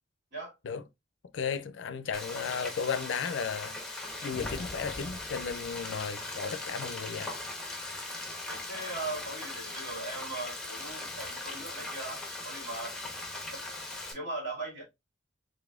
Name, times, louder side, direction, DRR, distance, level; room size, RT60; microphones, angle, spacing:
voice 1, 1.3-7.4 7.8-8.0, left 6 dB, 75° left, 0.4 m, -35 dB
Frying (food), 2.1-14.1, left 2 dB, 5° left, 0.9 m, -40 dB
sound 1, 4.3-6.4, left 1 dB, 30° left, 0.7 m, -45 dB
voice 2, 8.3-13.0 13.5-13.6 14.1-14.8, right 2 dB, 60° right, 2.5 m, -39 dB
4.0 x 3.2 x 2.3 m
head